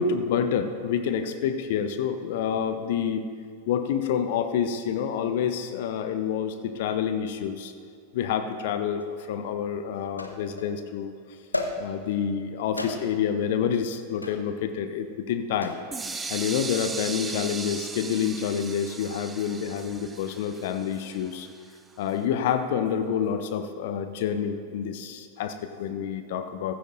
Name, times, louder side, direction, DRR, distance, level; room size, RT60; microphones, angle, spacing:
voice 1, 0.0-3.3 3.7-7.7 8.1-11.1 11.8-15.8 16.3-21.5 22.0-26.7, left 8 dB, 55° left, 9 dB, 0.6 m, -28 dB
sound 1, 9.0-9.1 10.2-10.8 11.5-12.2 12.8-13.3 14.2-14.5 15.6-16.0 17.2-17.6, left 2 dB, 80° left, 0.8 m, -34 dB
sound 2, 15.9-21.7, right 3 dB, 15° right, 0.6 m, -37 dB
15.5 x 12.5 x 2.6 m, 2.3 s
figure-of-eight pair, 90°, 0 cm